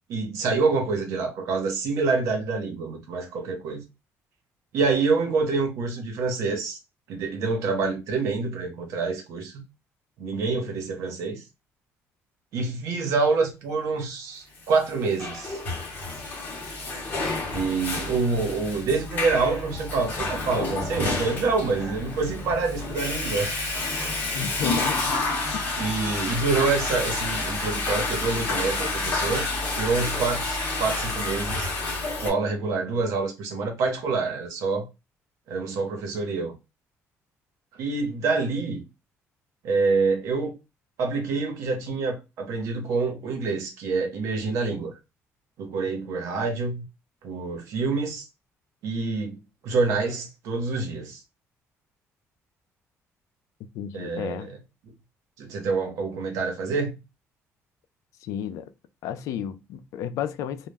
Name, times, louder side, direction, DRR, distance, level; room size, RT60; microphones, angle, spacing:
voice 1, 0.1-3.9 4.7-6.8 7.1-9.5 10.2-11.4 12.5-15.6 17.5-23.5 25.8-31.7 32.2-34.9 35.5-36.5 37.8-38.8 39.6-40.5 41.0-44.9 45.6-46.8 47.2-48.3 48.8-49.4 49.6-51.2 53.9-54.6 55.4-57.0, right 4 dB, 70° right, 0.8 m, -26 dB
Water / Toilet flush, 14.8-32.3, left 2 dB, 35° left, 0.8 m, -29 dB
voice 2, 24.3-25.2 53.7-54.5 58.2-58.7 59.0-60.7, left 9 dB, 75° left, 0.3 m, -32 dB
2.2 x 2.1 x 3.3 m
cardioid pair, 170°, 5 cm